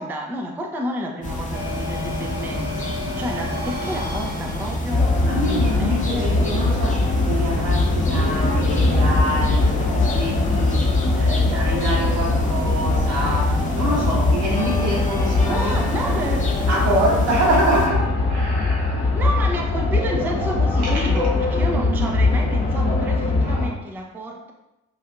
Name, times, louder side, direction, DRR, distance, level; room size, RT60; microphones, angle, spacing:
voice 1, 0.0-5.1 5.4-6.4 15.5-16.5 19.0-24.5, equal, 5° right, 1 dB, 0.4 m, -31 dB
sound 1, 1.2-17.9, left 1 dB, 20° left, 0.7 m, -27 dB
sound 2, 1.5-6.8, left 1 dB, 20° right, 0.8 m, -34 dB
sound 3, 4.9-23.7, left 3 dB, 55° left, 1.0 m, -21 dB
voice 2, 5.3-10.8 11.2-16.2 16.6-19.0 20.8-20.9, right 1 dB, 70° right, -4 dB, 1.3 m, -26 dB
4.4 x 2.5 x 2.4 m, 0.96 s
hypercardioid pair, 45°, 42 cm